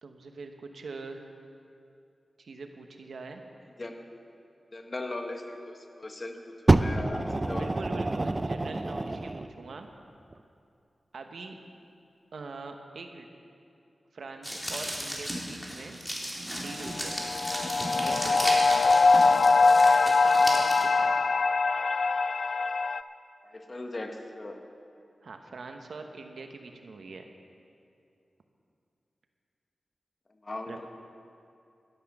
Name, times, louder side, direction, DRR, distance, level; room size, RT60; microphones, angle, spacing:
voice 1, 0.0-1.4 2.4-3.4 7.5-9.9 11.1-11.6 12.3-13.3 14.1-16.0 16.6-17.1 18.0-18.9 20.0-21.1 25.2-27.3 30.7-30.8, right 3 dB, 85° right, 5 dB, 1.1 m, -43 dB
voice 2, 4.7-7.8 23.4-24.6 30.4-30.9, left 2 dB, 40° left, 4 dB, 1.3 m, -38 dB
Fire, 6.7-9.5 10.3-10.4, right 2 dB, 35° right, 0.5 m, -26 dB
sound 1, 14.4-20.8, equal, ahead, 3.0 m, -34 dB
sound 2, 16.9-23.0, left 4 dB, 70° left, 0.3 m, -22 dB
12.5 x 11.5 x 6.1 m, 2.5 s
cardioid pair, 60°, 0 cm